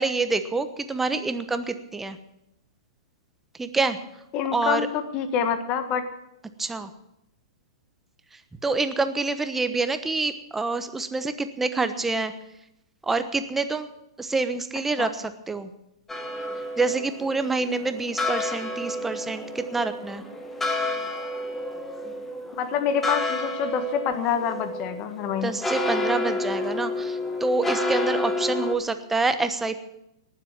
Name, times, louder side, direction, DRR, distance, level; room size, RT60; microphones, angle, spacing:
voice 1, 0.0-2.2 3.6-4.0 4.5-4.9 6.6-6.9 8.6-12.3 13.0-13.9 14.2-15.7 16.8-20.2 25.4-29.8, right 3 dB, 10° right, 9 dB, 1.1 m, -27 dB
voice 2, 4.3-6.0 15.0-15.1 22.6-25.6, left 7 dB, 35° left, 8 dB, 1.5 m, -26 dB
sound 1, 16.1-28.7, left 2 dB, 10° left, 1.4 m, -30 dB
19.0 x 7.6 x 7.4 m, 0.86 s
hypercardioid pair, 130°, 3 cm